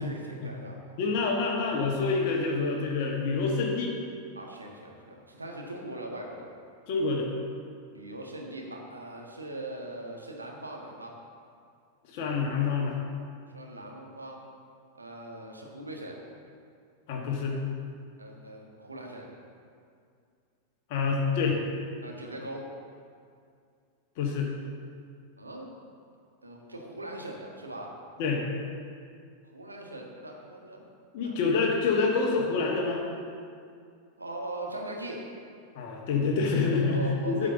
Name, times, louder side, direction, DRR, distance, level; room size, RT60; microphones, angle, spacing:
voice 1, 0.0-0.8 1.5-1.6 4.3-6.5 7.9-11.1 13.5-14.4 14.9-16.2 18.2-19.3 22.0-22.7 25.4-25.7 26.4-27.9 29.5-30.8 31.2-31.3 34.2-35.3 36.9-37.5, right 1 dB, 80° right, 0 dB, 1.5 m, -40 dB
voice 2, 1.0-3.9 6.9-7.3 12.1-12.9 17.1-17.6 20.9-21.6 24.2-24.5 28.2-28.4 31.1-33.0 35.7-37.5, left 4 dB, 50° left, -1 dB, 1.3 m, -27 dB
9.9 x 5.1 x 7.1 m, 2.3 s
figure-of-eight pair, 90°, 0 cm